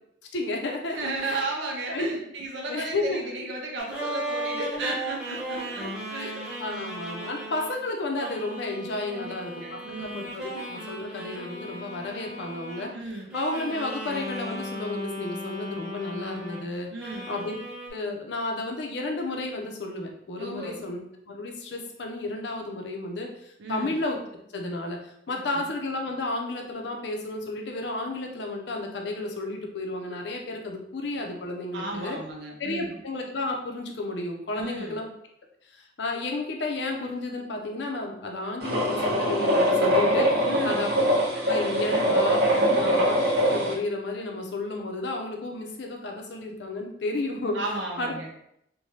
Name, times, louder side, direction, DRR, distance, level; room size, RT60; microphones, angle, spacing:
voice 1, 0.3-1.5 1.9-2.1 2.7-3.2 6.2-6.3 6.6-12.9 13.3-16.9 17.3-17.6 17.9-24.2 24.5-32.2 32.6-35.1 35.7-40.9 41.4-42.4 42.8-43.1 43.5-47.6 48.0-48.1, left 2 dB, 70° left, 2 dB, 0.5 m, -32 dB
voice 2, 0.9-6.4 9.1-10.3 12.9-13.3 16.9-17.3 20.4-20.9 23.6-24.0 25.3-25.6 31.7-33.0 34.5-35.0 40.5-40.8 42.5-42.9 47.5-48.3, right 2 dB, 75° right, 0 dB, 0.4 m, -34 dB
sound 1, 3.8-7.7 8.2-13.0 13.3-16.7 17.0-17.9, right 1 dB, 5° right, 0.7 m, -36 dB
sound 2, 38.6-43.7, equal, 55° right, 1.0 m, -23 dB
3.1 x 2.2 x 2.7 m, 0.75 s
head